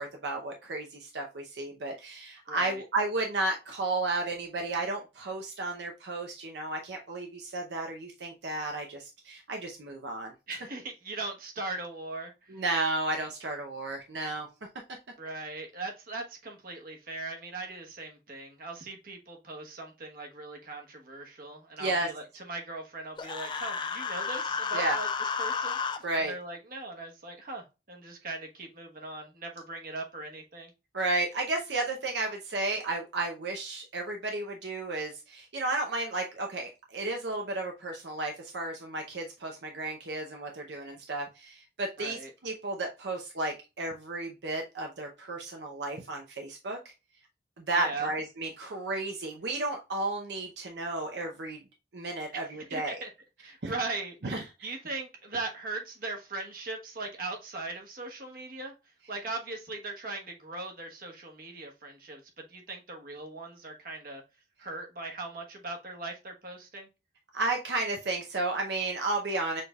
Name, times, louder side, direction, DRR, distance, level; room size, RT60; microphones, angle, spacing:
voice 1, 0.0-10.3 12.5-14.5 21.8-22.1 24.7-25.0 26.0-26.3 30.9-46.8 47.6-51.6 51.9-53.0 53.6-53.7 54.2-54.7 67.3-69.6, right 2 dB, 80° right, 0.7 m, -33 dB
voice 2, 2.5-2.8 10.5-12.6 15.2-25.1 25.4-30.7 42.0-42.3 47.7-48.1 52.3-53.1 53.4-58.7 59.1-64.2 64.6-66.9, right 3 dB, 55° right, 1.2 m, -39 dB
Human voice, 23.2-26.0, left 5 dB, 25° left, 0.4 m, -32 dB
6.7 x 3.3 x 2.3 m
head